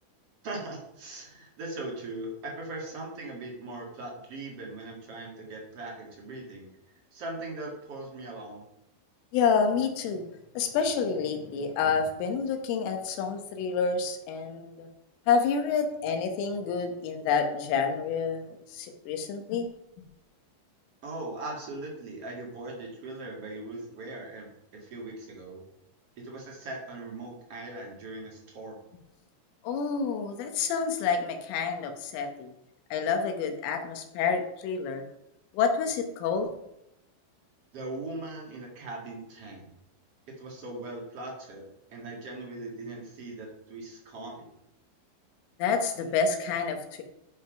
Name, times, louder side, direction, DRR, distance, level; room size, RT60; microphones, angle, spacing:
voice 1, 0.4-6.7 7.1-8.7 21.0-25.6 26.2-28.8 37.7-39.7 40.4-44.5, right 2 dB, 45° right, -1 dB, 2.0 m, -40 dB
voice 2, 9.3-10.3 10.6-14.9 15.3-19.7 29.6-32.5 32.9-35.0 35.5-36.5 45.6-47.0, left 5 dB, 90° left, 5 dB, 3.8 m, -28 dB
12.5 x 5.5 x 5.2 m, 0.84 s
omnidirectional pair, 5.6 m